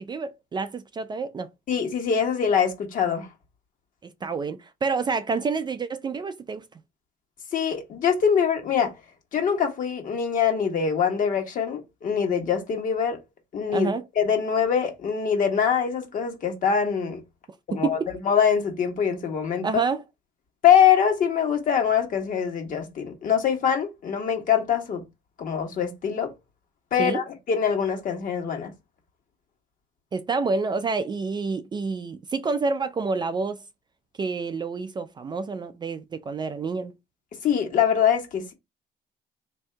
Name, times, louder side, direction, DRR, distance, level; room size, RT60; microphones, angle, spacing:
voice 1, 0.0-1.5 4.0-6.6 13.7-14.0 17.7-18.1 19.6-20.0 27.0-27.2 30.1-33.6 34.2-36.9, right 4 dB, 25° right, 0.4 m, -28 dB
voice 2, 1.7-3.3 7.5-8.9 9.3-13.2 13.5-13.9 14.2-17.2 17.7-18.0 18.2-19.7 20.6-25.0 25.4-26.3 26.9-28.7 37.4-38.5, left 7 dB, 55° left, 1.3 m, -23 dB
3.6 x 2.7 x 3.3 m
cardioid pair, 110°, 17 cm